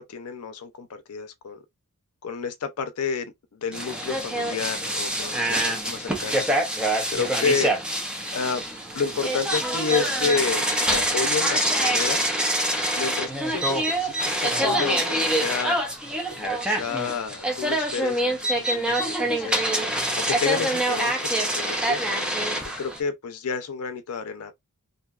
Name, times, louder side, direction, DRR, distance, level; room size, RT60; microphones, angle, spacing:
voice 1, 0.0-1.6 2.2-6.5 7.1-7.7 8.3-8.6 8.9-12.3 12.9-15.8 16.3-19.6 20.1-22.0 22.8-24.6, left 5 dB, 80° left, 0.5 m, -30 dB
sound 1, 3.7-23.0, right 1 dB, 5° right, 0.5 m, -25 dB
2.6 x 2.2 x 2.3 m
head